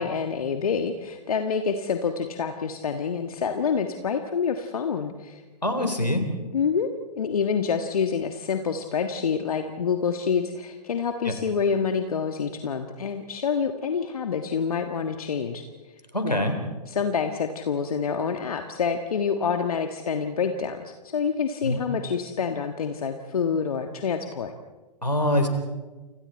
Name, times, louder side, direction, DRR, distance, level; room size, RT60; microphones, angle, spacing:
voice 1, 0.0-5.4 5.8-5.9 6.5-6.9 7.2-15.6 16.2-16.4 16.9-24.5, left 6 dB, 60° left, 6 dB, 1.7 m, -27 dB
voice 2, 5.6-6.2 16.1-16.5 21.6-21.8 25.0-25.5, left 1 dB, 90° left, 6 dB, 4.2 m, -24 dB
29.5 x 26.5 x 4.5 m, 1.3 s
figure-of-eight pair, 115°, 21 cm